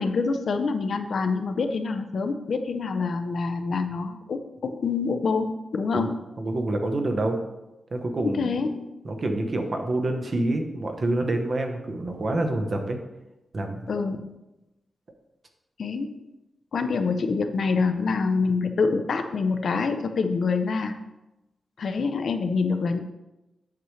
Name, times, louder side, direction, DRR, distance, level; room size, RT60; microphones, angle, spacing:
voice 1, 0.0-6.2 8.2-8.8 13.9-14.3 15.8-16.2 16.7-20.9 21.8-23.0, left 4 dB, 55° left, 7 dB, 0.6 m, -26 dB
voice 2, 6.4-7.4 7.9-8.5 9.0-13.0 13.5-13.9, right 2 dB, 35° right, 4 dB, 0.9 m, -27 dB
8.3 x 7.8 x 3.2 m, 0.98 s
wide cardioid pair, 175°, 0 cm